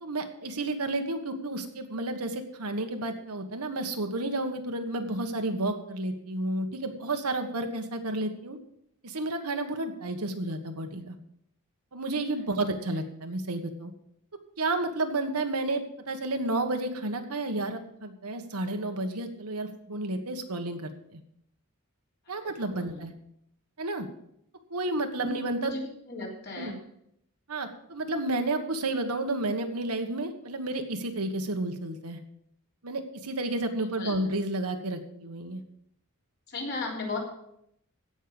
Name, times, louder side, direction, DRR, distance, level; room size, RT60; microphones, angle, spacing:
voice 1, 0.0-8.6 9.0-11.2 11.9-13.9 14.6-21.2 22.3-23.1 23.8-24.1 24.7-25.7 26.6-26.7 27.5-32.2 32.8-35.6, right 2 dB, 80° right, 6 dB, 1.4 m, -31 dB
voice 2, 22.3-23.0 25.1-26.8 34.0-34.2 36.5-37.2, left 3 dB, 50° left, -2 dB, 3.7 m, -36 dB
16.0 x 5.6 x 7.0 m, 0.75 s
head